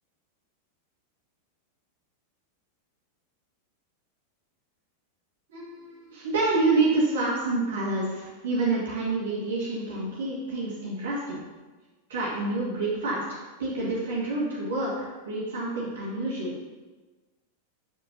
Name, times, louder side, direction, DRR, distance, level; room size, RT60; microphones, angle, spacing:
voice 1, 5.5-11.4 12.1-16.5, right 2 dB, 60° right, -6 dB, 2.2 m, -28 dB
7.2 x 6.2 x 4.1 m, 1.2 s
figure-of-eight pair, 90°, 0 cm